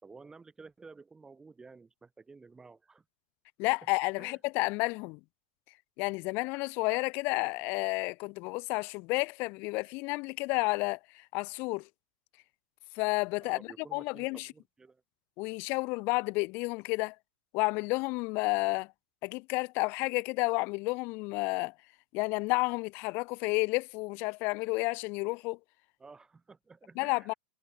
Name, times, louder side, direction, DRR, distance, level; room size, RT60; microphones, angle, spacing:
voice 1, 0.0-3.0 4.2-4.4 13.4-15.0 26.0-27.4, right 4 dB, 10° right, 5.3 m, -52 dB
voice 2, 3.6-5.2 6.0-11.8 12.9-13.6 13.9-14.5 15.4-17.1 17.5-18.9 19.2-21.7 22.1-25.6 27.0-27.3, left 26 dB, 40° left, 1.4 m, -31 dB
figure-of-eight pair, 90°, 5 cm